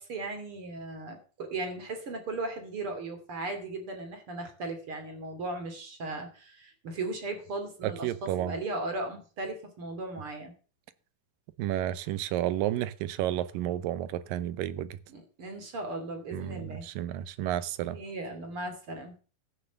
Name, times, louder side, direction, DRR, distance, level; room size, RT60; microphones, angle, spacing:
voice 1, 0.0-10.5 15.1-16.9 17.9-19.2, right 2 dB, 40° right, 3.2 m, -37 dB
voice 2, 8.0-8.5 11.6-14.9 16.3-18.0, right 12 dB, 75° right, 2.3 m, -31 dB
13.5 x 6.7 x 6.9 m
omnidirectional pair, 4.3 m